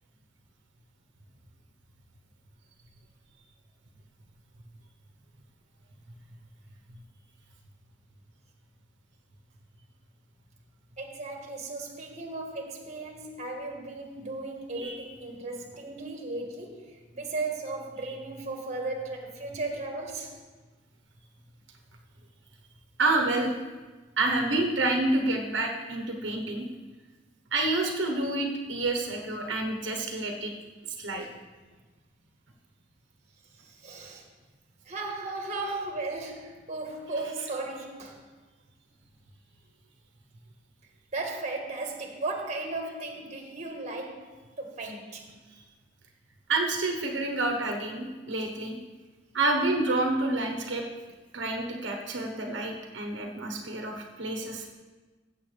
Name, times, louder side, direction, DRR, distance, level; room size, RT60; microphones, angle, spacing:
voice 1, 11.0-20.4 33.6-34.2 34.8-38.2 41.1-44.3 44.6-45.3, right 2 dB, 40° right, 2 dB, 1.5 m, -36 dB
voice 2, 23.0-23.5 24.2-26.7 27.5-30.5 30.9-31.2 46.5-48.8 49.3-50.8 51.3-54.7, right 2 dB, 85° right, 2 dB, 1.1 m, -28 dB
15.0 x 7.5 x 3.4 m, 1.3 s
head